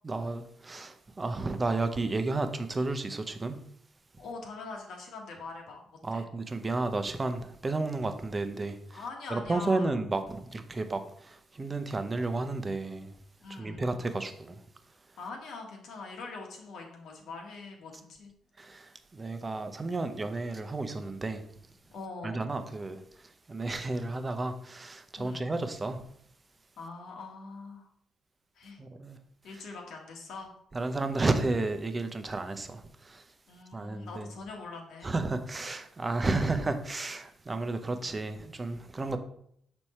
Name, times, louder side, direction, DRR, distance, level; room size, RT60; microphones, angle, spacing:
voice 1, 0.0-3.7 6.0-9.0 9.3-13.2 13.5-14.6 18.6-21.5 22.2-26.1 28.8-29.2 30.7-33.3 33.7-34.3 35.0-39.2, right 2 dB, 25° right, 0.8 m, -32 dB
voice 2, 4.2-6.3 8.9-9.9 13.4-13.9 15.2-18.3 21.9-22.5 25.2-25.5 26.8-27.9 28.5-28.8 29.4-30.5 33.5-35.1 37.9-38.1 39.0-39.2, left 3 dB, 75° left, 1.6 m, -43 dB
6.4 x 4.4 x 4.3 m
cardioid pair, 90°, 0 cm